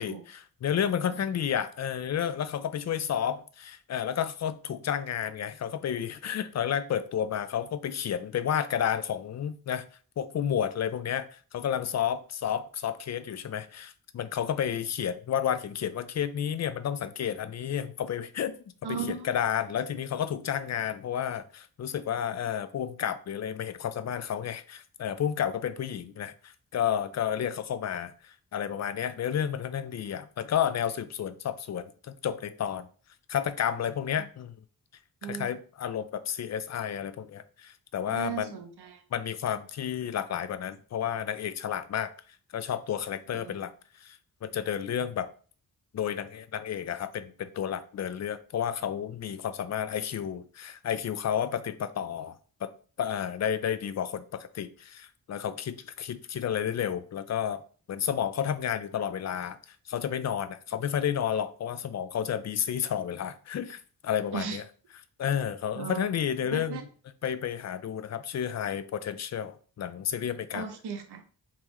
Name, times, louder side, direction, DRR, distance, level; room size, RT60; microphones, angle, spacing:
voice 1, 0.0-9.8 10.2-18.5 18.9-32.9 33.3-34.5 35.2-38.6 39.1-42.1 42.5-43.7 44.0-45.3 45.9-52.4 52.6-52.7 53.0-57.6 57.9-64.6 65.2-66.8 67.2-70.7, left 9 dB, 45° left, 12 dB, 0.4 m, -31 dB
voice 2, 18.8-19.2 35.2-35.5 38.1-39.0 43.3-43.6 64.3-64.6 65.8-66.1 66.5-66.8 70.5-71.2, right 6 dB, 80° right, 5 dB, 0.8 m, -36 dB
3.6 x 3.0 x 3.0 m, 0.40 s
wide cardioid pair, 95°, 39 cm